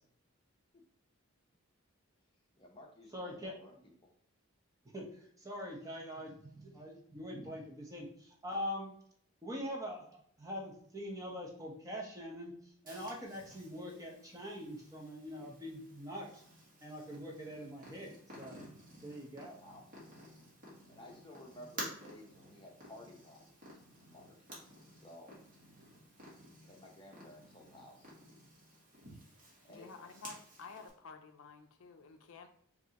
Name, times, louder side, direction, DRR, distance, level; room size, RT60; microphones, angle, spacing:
voice 1, 2.6-4.1 19.6-20.0 20.8-23.6 24.1-24.3 24.9-25.4 26.6-28.1 29.6-29.9, left 1 dB, 25° left, -1 dB, 0.9 m, -55 dB
voice 2, 3.1-3.6 4.9-8.9 9.4-12.5 12.8-16.4 16.8-18.1 18.4-18.6 19.0-19.6, equal, 15° right, -2 dB, 0.8 m, -43 dB
Purr, 12.9-30.9, equal, 40° right, 1.4 m, -53 dB
voice 3, 29.7-32.5, left 4 dB, 65° left, 6 dB, 0.5 m, -51 dB
5.2 x 2.7 x 2.8 m, 0.65 s
head